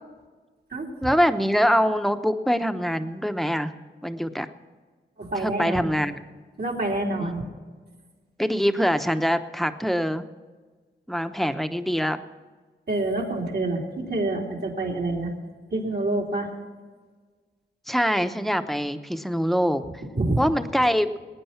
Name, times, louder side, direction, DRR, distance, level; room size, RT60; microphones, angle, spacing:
voice 1, 1.0-3.7 4.0-4.5 5.4-6.2 7.2-7.4 8.4-10.2 11.1-12.2 17.9-20.0 20.4-21.1, equal, ahead, 8 dB, 0.9 m, -24 dB
voice 2, 5.2-5.8 6.6-7.5 12.9-15.3 15.7-16.5 20.1-20.4, right 2 dB, 60° right, -1 dB, 3.1 m, -27 dB
19.5 x 9.4 x 5.8 m, 1.4 s
cardioid pair, 45°, 19 cm